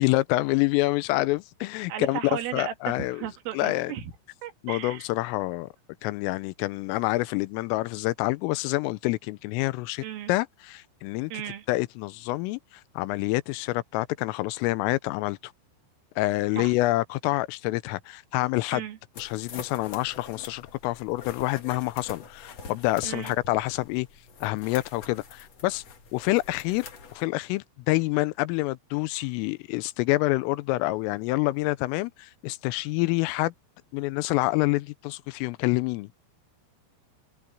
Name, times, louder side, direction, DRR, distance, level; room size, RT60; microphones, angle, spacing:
voice 1, 0.0-2.2 2.5-3.3 3.5-3.9 4.6-5.7 6.0-11.3 11.7-12.6 13.0-15.5 16.2-18.8 19.2-24.1 24.4-25.8 26.1-33.5 33.9-36.1, left 20 dB, 85° left, 3.3 m, -27 dB
voice 2, 1.9-4.1 4.4-5.1 10.0-10.3 11.3-11.7 16.6-16.7 18.7-19.0 23.0-23.4, right 11 dB, 75° right, 4.4 m, -35 dB
sound 1, 19.1-27.2, left 5 dB, 50° left, 2.2 m, -45 dB
omnidirectional pair, 5.9 m